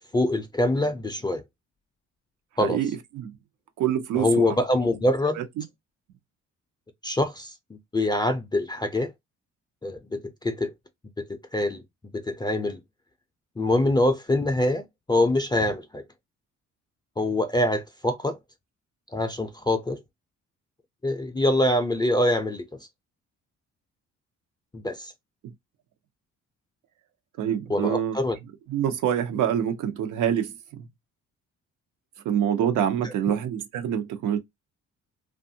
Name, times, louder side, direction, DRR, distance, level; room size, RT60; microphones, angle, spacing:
voice 1, 0.1-1.4 2.6-2.8 4.2-5.4 7.0-9.1 9.8-10.7 11.5-11.8 12.1-12.8 13.6-16.0 17.2-18.4 19.1-20.0 21.0-22.6 24.7-25.1 27.7-28.4 33.0-33.1, left 1 dB, 15° left, 0.4 m, -24 dB
voice 2, 2.6-3.3 3.8-4.5 5.4-5.6 27.4-28.2 28.7-30.8 32.2-34.4, right 9 dB, 80° right, 0.7 m, -26 dB
2.6 x 2.4 x 2.6 m
cardioid pair, 90°, 30 cm